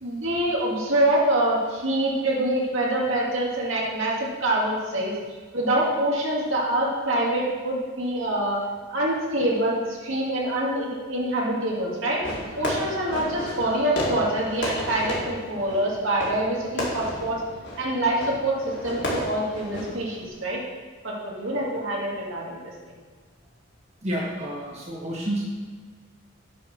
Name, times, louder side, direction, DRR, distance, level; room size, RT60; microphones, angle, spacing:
voice 1, 0.0-5.1 5.5-8.6 8.9-12.2 12.6-17.4 17.8-20.6 21.0-22.7, right 1 dB, 65° right, -3 dB, 2.1 m, -25 dB
Fireworks, 12.2-20.3, left 1 dB, 55° left, 2.1 m, -33 dB
voice 2, 24.0-25.4, right 1 dB, 30° right, -5 dB, 1.2 m, -29 dB
9.2 x 4.6 x 6.0 m, 1.5 s
head